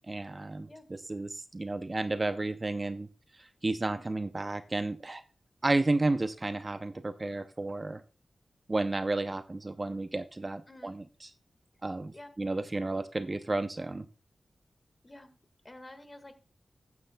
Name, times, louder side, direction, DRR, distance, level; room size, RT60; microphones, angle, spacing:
voice 1, 0.1-3.1 3.4-5.2 5.6-8.0 8.7-11.3 11.8-14.1, right 2 dB, 30° right, 10 dB, 0.5 m, -32 dB
voice 2, 15.6-16.4, left 1 dB, 25° left, 8 dB, 1.7 m, -49 dB
13.5 x 9.5 x 2.2 m, 0.35 s
wide cardioid pair, 95°, 0 cm